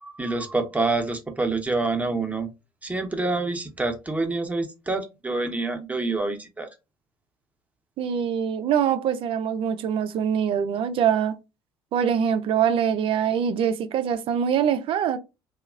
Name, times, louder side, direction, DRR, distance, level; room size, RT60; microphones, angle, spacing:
voice 1, 0.0-2.5 2.8-6.7, right 3 dB, 15° right, 0.9 m, -27 dB
voice 2, 8.0-11.4 11.9-15.2, right 8 dB, 55° right, 0.5 m, -24 dB
2.8 x 2.4 x 2.4 m
hypercardioid pair, 60°, 11 cm